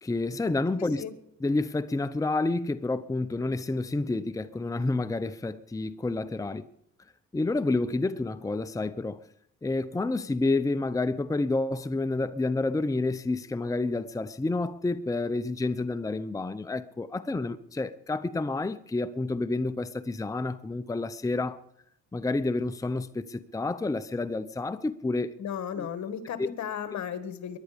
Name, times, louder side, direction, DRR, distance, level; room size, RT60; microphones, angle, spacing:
voice 1, 0.0-1.0 1.4-6.7 7.3-9.2 9.6-21.6 22.1-25.3 25.8-25.9 26.4-26.5, left 2 dB, 10° left, 0.7 m, -29 dB
voice 2, 0.8-1.1 25.4-27.6, left 8 dB, 65° left, 1.8 m, -35 dB
23.0 x 11.0 x 5.2 m
cardioid pair, 90°, 30 cm